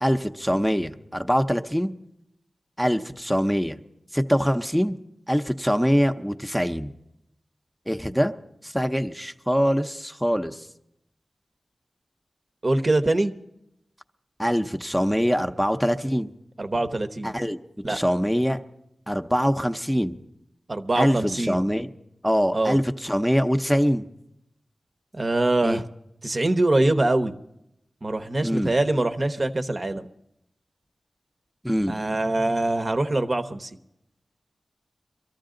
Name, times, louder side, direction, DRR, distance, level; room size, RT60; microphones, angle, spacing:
voice 1, 0.0-2.0 2.8-3.8 4.1-5.0 5.3-6.9 7.9-8.3 8.6-10.7 14.4-16.3 17.2-17.6 17.9-18.6 19.1-20.2 21.0-21.9 22.2-24.1 25.6-25.8 28.4-28.7 31.6-31.9, equal, ahead, 6 dB, 0.8 m, -23 dB
voice 2, 12.6-13.3 16.6-17.3 17.8-18.0 20.7-21.7 22.5-22.8 25.1-25.8 26.2-27.3 28.0-30.1 31.9-33.7, right 2 dB, 45° right, 8 dB, 1.0 m, -23 dB
23.5 x 13.5 x 3.8 m, 0.83 s
cardioid pair, 55°, 0 cm